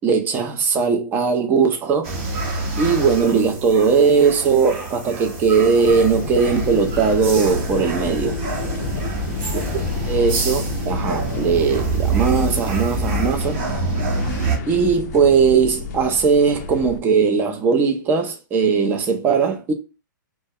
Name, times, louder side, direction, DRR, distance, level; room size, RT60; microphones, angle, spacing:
voice 1, 0.0-2.1 2.8-8.4 10.0-13.6 14.7-19.7, right 5 dB, 20° right, 0.4 m, -19 dB
sound 1, 2.0-14.6, right 3 dB, 45° right, 0.8 m, -26 dB
sound 2, 5.8-17.0, left 5 dB, 50° left, 0.4 m, -30 dB
2.3 x 2.0 x 2.7 m
hypercardioid pair, 145°, 11 cm